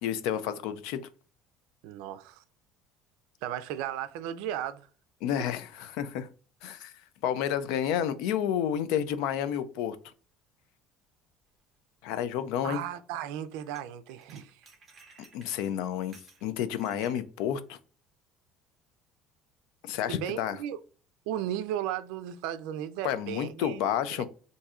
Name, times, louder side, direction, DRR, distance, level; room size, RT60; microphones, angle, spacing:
voice 1, 0.0-1.0 5.2-6.3 6.6-6.9 7.2-10.0 12.0-12.8 15.3-16.2 16.4-17.8 19.8-20.6 23.0-24.3, left 9 dB, 75° left, 0.4 m, -30 dB
voice 2, 1.8-2.4 3.4-4.9 12.6-14.6 20.1-20.8 21.3-23.8, right 11 dB, 85° right, 0.4 m, -35 dB
sound 1, 11.5-11.6 13.7-13.8 14.1-17.2, right 4 dB, 20° right, 0.7 m, -56 dB
2.6 x 2.4 x 4.1 m
cardioid pair, 180°, 0 cm